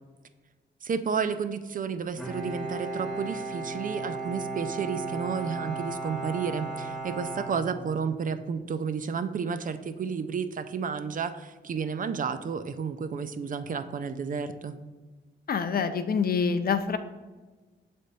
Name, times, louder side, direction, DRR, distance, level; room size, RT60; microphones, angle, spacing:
voice 1, 0.8-14.7, right 6 dB, 45° right, 11 dB, 0.4 m, -31 dB
Bowed string instrument, 2.2-8.3, right 3 dB, ahead, 1.5 m, -35 dB
voice 2, 15.5-17.0, left 6 dB, 55° left, 9 dB, 0.5 m, -26 dB
7.4 x 3.4 x 4.0 m, 1.3 s
wide cardioid pair, 130°, 19 cm